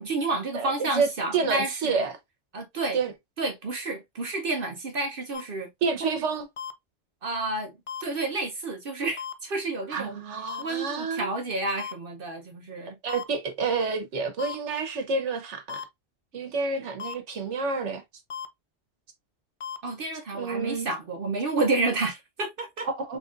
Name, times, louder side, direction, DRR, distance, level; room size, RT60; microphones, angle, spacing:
voice 1, 0.0-2.0 2.5-3.0 3.4-5.7 7.2-7.7 8.0-10.2 10.6-13.0 19.8-22.9, right 2 dB, 55° right, 0.9 m, -30 dB
voice 2, 0.5-2.2 2.9-3.1 5.8-6.5 9.9-11.3 13.0-15.8 16.3-18.0 20.3-20.9 22.8-23.2, right 4 dB, 80° right, 1.3 m, -29 dB
sound 1, 5.3-5.4 6.6-6.7 7.9-8.0 9.2-9.3 10.5-10.6 11.8-11.9 13.1-13.2 14.4-14.5 15.7-15.8 17.0-17.1 18.3-18.5 19.6-19.8, left 7 dB, 55° left, 0.3 m, -35 dB
3.9 x 3.4 x 2.4 m
omnidirectional pair, 1.2 m